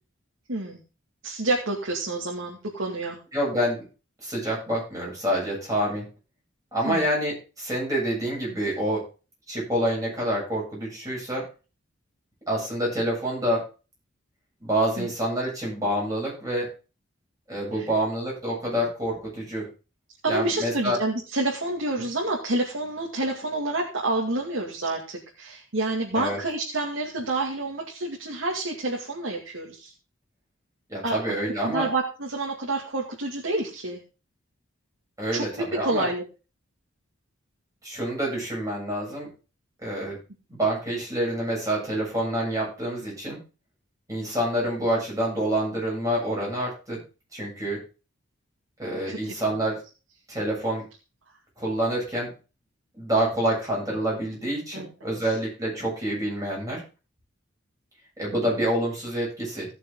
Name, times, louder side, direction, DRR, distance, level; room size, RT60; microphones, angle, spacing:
voice 1, 0.5-0.8 1.2-3.2 6.8-7.1 15.0-15.1 17.7-17.9 20.2-29.9 31.0-34.0 35.3-35.4 35.8-36.2 49.1-49.6 54.7-54.9, right 2 dB, 80° right, -2 dB, 2.4 m, -28 dB
voice 2, 3.3-3.9 4.2-6.0 6.7-9.0 9.5-11.5 12.5-13.7 14.6-16.7 17.5-19.7 20.3-21.0 26.1-26.4 30.9-31.9 35.2-36.1 37.8-39.3 39.8-40.2 40.5-43.4 44.1-47.0 47.3-47.8 48.8-49.8 50.3-50.8 51.6-52.3 52.9-56.8 58.2-59.7, right 1 dB, 15° right, -4 dB, 7.9 m, -27 dB
17.0 x 6.8 x 3.7 m, 0.32 s
head